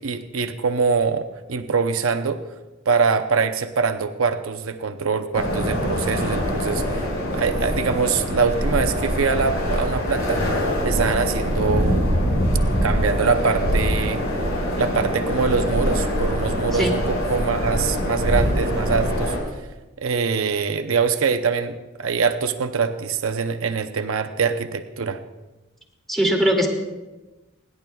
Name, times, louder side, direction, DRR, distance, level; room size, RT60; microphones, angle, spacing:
voice 1, 0.0-2.4 2.9-7.0 7.3-10.4 10.8-12.1 12.8-19.7 20.0-25.2, right 5 dB, 80° right, 8 dB, 0.7 m, -23 dB
sound 1, 5.3-19.4, equal, 85° left, 5.1 m, -23 dB
voice 2, 26.1-26.7, equal, ahead, -1 dB, 2.2 m, -20 dB
29.5 x 10.5 x 2.3 m, 1.1 s
head